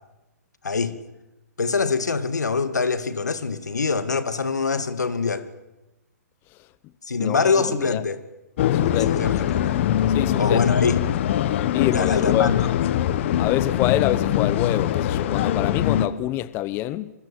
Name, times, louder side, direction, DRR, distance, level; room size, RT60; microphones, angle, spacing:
voice 1, 0.6-1.0 1.6-5.5 7.1-8.2 8.8-9.8 10.4-11.0 11.9-12.6, left 4 dB, 90° left, 2.4 m, -24 dB
voice 2, 7.2-8.0 8.7-9.1 10.1-10.6 11.7-12.6 13.4-17.1, left 14 dB, 25° left, 0.9 m, -26 dB
sound 1, 8.6-16.1, left 11 dB, 45° left, 1.6 m, -22 dB
27.5 x 24.0 x 8.8 m
hypercardioid pair, 140°, 9 cm